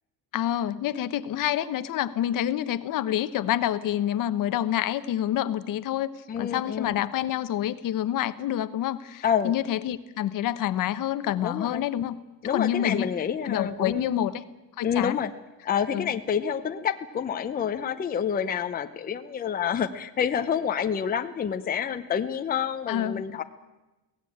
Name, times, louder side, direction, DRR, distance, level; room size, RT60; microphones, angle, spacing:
voice 1, 0.3-12.2 12.5-13.1 13.4-14.4 14.8-15.2 15.9-16.1 22.9-23.2, left 11 dB, 55° left, 13 dB, 1.0 m, -27 dB
voice 2, 6.3-7.0 9.2-9.5 11.4-11.9 12.4-14.3 14.8-15.3 15.6-23.4, left 8 dB, 25° left, 7 dB, 0.7 m, -28 dB
23.0 x 17.5 x 8.7 m, 1.1 s
cardioid pair, 180°, 38 cm